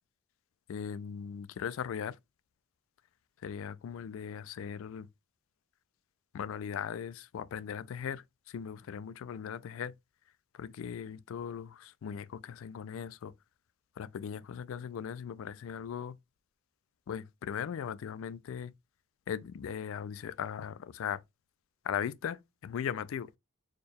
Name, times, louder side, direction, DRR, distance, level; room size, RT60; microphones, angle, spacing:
voice 1, 0.7-2.2 3.4-5.1 6.3-9.9 10.5-13.3 14.0-16.2 17.1-18.7 19.3-21.2 21.8-23.3, left 8 dB, 70° left, 0.3 m, -38 dB
4.3 x 2.2 x 3.3 m
head